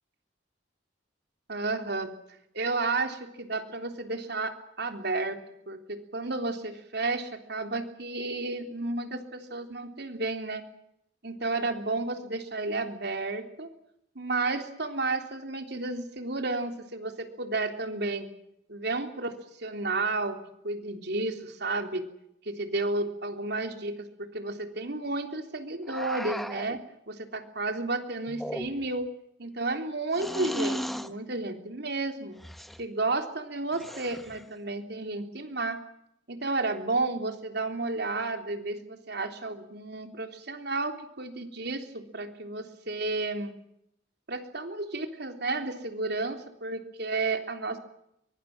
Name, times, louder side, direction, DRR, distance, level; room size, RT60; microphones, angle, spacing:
voice 1, 1.5-2.1 2.5-5.4 5.7-10.6 11.2-13.7 14.2-18.3 18.7-20.4 20.6-22.0 22.5-26.8 27.1-29.1 29.4-32.4 32.8-35.8 36.3-43.5 44.3-47.8, right 3 dB, 65° right, 6 dB, 3.5 m, -32 dB
sound 1, 25.9-26.8 28.3-29.0 30.1-31.1 32.4-32.8 33.7-34.4, equal, ahead, 1.3 m, -36 dB
23.5 x 23.5 x 7.4 m, 0.77 s
head